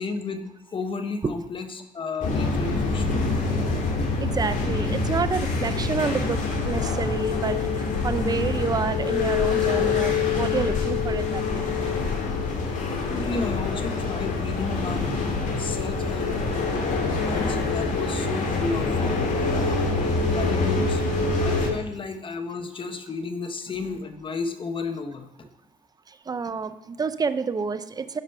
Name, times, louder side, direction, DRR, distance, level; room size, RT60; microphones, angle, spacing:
voice 1, 0.0-3.3 13.1-15.1 15.6-16.7 17.1-18.9 19.2-19.8 20.3-21.0 21.4-25.3, left 4 dB, 30° left, 7 dB, 1.1 m, -33 dB
sound 1, 2.2-21.7, left 4 dB, 50° left, 2.3 m, -25 dB
voice 2, 4.2-11.7 26.3-28.2, right 5 dB, 25° right, 12 dB, 0.6 m, -29 dB
11.0 x 5.1 x 5.7 m, 0.86 s
cardioid pair, 110°, 17 cm